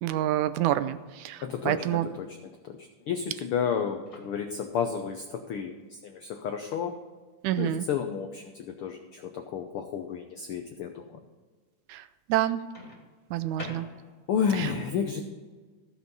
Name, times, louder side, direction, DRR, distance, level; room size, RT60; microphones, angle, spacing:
voice 1, 0.0-2.1 7.4-7.9 11.9-12.0 12.3-12.6 13.3-13.9, right 13 dB, 85° right, 12 dB, 2.0 m, -27 dB
voice 2, 1.4-2.4 2.6-7.0 7.6-11.2 14.3-15.2, left 7 dB, 85° left, 5 dB, 1.2 m, -31 dB
Microwave oven, 4.0-4.7 6.7-6.9 12.7-14.4, equal, 15° left, 1.9 m, -45 dB
14.5 x 6.7 x 5.5 m, 1.4 s
omnidirectional pair, 3.4 m